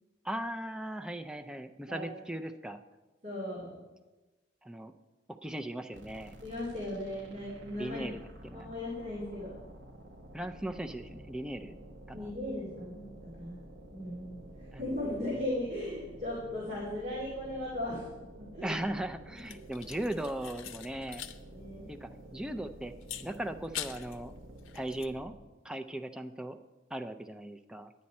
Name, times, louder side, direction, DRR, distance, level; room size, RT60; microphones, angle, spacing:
voice 1, 0.2-2.8 4.6-4.9 5.4-6.3 7.8-8.7 10.3-11.8 12.1-12.3 14.7-14.9 18.6-21.3 21.9-22.9 23.2-24.3 24.7-25.3 25.6-26.6 26.9-27.9, right 1 dB, 5° right, 6 dB, 0.4 m, -38 dB
voice 2, 3.2-3.8 6.4-8.0 8.5-9.6 12.1-13.6 13.9-18.1 18.4-18.7 21.5-21.9, left 1 dB, 40° right, -6 dB, 2.4 m, -37 dB
sound 1, 5.9-25.6, right 1 dB, 60° right, 1.0 m, -51 dB
sound 2, 19.4-21.4 21.7-21.8 23.0-24.2 24.6-25.1, left 11 dB, 90° left, 0.6 m, -43 dB
9.9 x 9.5 x 4.2 m, 1.2 s
head